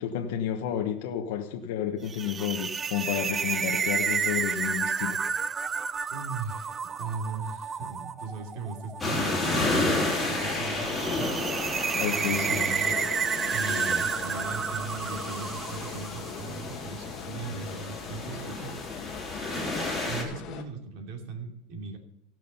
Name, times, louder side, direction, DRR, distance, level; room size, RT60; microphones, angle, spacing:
voice 1, 0.0-5.2 11.9-12.7, left 10 dB, 75° left, 1.1 m, -31 dB
sound 1, 2.1-16.4, right 6 dB, 20° right, 0.4 m, -31 dB
voice 2, 6.1-11.6 12.0-13.0 13.5-18.7 20.0-22.0, right 4 dB, 60° right, 2.7 m, -38 dB
sound 2, 9.0-20.2, left 2 dB, 10° left, 3.1 m, -32 dB
sound 3, 9.9-20.6, left 7 dB, 45° left, 1.4 m, -41 dB
16.0 x 6.2 x 5.5 m
supercardioid pair, 140°, 0 cm